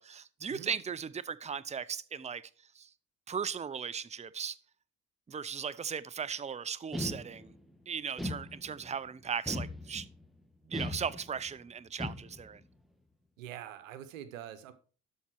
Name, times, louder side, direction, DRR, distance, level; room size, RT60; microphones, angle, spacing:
voice 1, 0.0-2.4 2.8-2.9 3.3-4.6 5.3-7.5 7.9-10.0 10.7-12.6, right 7 dB, 20° right, 0.6 m, -37 dB
sound 1, 6.9-7.7 8.2-8.9 9.5-10.2 10.7-11.5 12.0-12.6, left 1 dB, ahead, 1.4 m, -39 dB
voice 2, 13.4-14.7, right 11 dB, 90° right, 0.8 m, -45 dB
12.5 x 4.3 x 4.7 m
hypercardioid pair, 50°, 38 cm